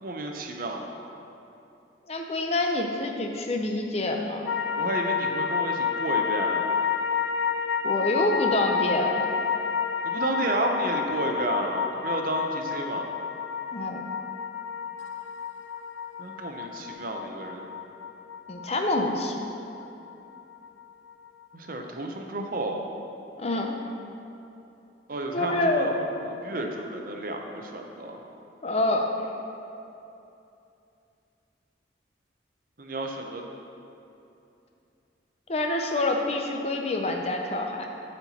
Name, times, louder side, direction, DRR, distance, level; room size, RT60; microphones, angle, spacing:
voice 1, 0.0-0.8 4.7-6.7 10.0-13.1 16.2-17.7 21.5-22.8 25.1-28.2 32.8-33.4, right 2 dB, 50° right, 2 dB, 0.7 m, -31 dB
voice 2, 2.1-4.5 7.8-9.3 13.7-14.1 18.5-19.4 23.4-23.7 25.3-25.9 28.6-29.1 35.5-37.9, left 2 dB, 35° left, 2 dB, 0.6 m, -26 dB
sound 1, 4.5-20.8 21.1-21.2, left 6 dB, 85° left, 0.4 m, -30 dB
12.0 x 4.4 x 4.2 m, 2.8 s
head